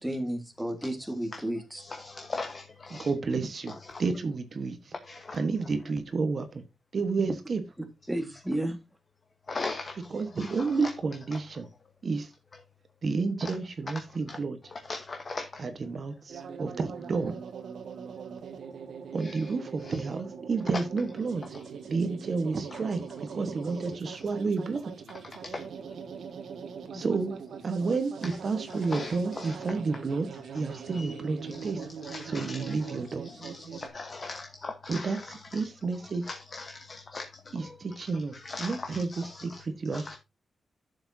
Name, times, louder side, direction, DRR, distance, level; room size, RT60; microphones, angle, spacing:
voice 1, 0.0-1.8 8.1-8.8, right 1 dB, 5° right, 1.6 m, -32 dB
voice 2, 0.8-1.4 1.7-3.1 3.9-4.0 5.0-5.4 9.5-10.1 10.4-10.9 13.4-13.5 14.3-14.4 14.9-15.6 19.2-19.4 19.8-20.0 22.7-22.8 25.4-25.7 26.9-27.0 28.2-28.3 28.9-29.5 30.9-31.1 31.5-31.7 32.0-35.6 36.3-37.7 38.3-39.6 39.9-40.2, left 3 dB, 35° left, 1.1 m, -40 dB
voice 3, 2.9-4.9 5.3-6.6 6.9-7.6 10.1-11.7 12.0-12.3 13.0-14.6 15.6-17.4 19.1-21.4 21.9-24.9 26.9-27.4 27.6-30.3 30.5-31.9 32.2-33.2 34.9-36.3 37.5-40.2, right 4 dB, 45° right, 1.2 m, -31 dB
sound 1, 16.3-33.9, right 6 dB, 85° right, 1.7 m, -42 dB
12.0 x 7.0 x 2.7 m
wide cardioid pair, 150°, 0 cm